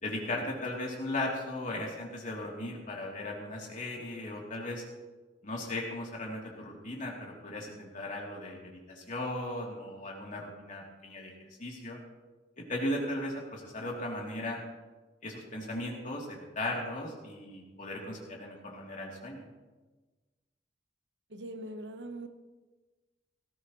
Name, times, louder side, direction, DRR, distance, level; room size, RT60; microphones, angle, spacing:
voice 1, 0.0-4.8 5.4-11.3 11.6-12.0 12.6-14.6 15.2-19.5, left 1 dB, 45° left, -2 dB, 3.0 m, -37 dB
voice 2, 21.3-22.3, right 1 dB, 85° right, 7 dB, 1.1 m, -41 dB
18.0 x 14.0 x 3.1 m, 1.3 s
head